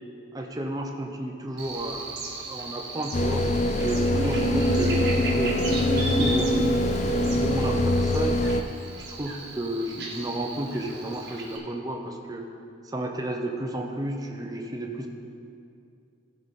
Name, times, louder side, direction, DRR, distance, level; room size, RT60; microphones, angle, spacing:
voice 1, 0.3-3.4 3.8-5.0 5.4-6.9 7.3-8.4 9.1-12.5 12.8-15.1, right 1 dB, 20° right, 2 dB, 0.7 m, -32 dB
Buzz, 1.6-11.6, right 1 dB, 55° right, 1.4 m, -33 dB
sound 1, 3.1-8.6, left 1 dB, 35° left, 0.3 m, -24 dB
15.0 x 5.2 x 4.1 m, 2.5 s
head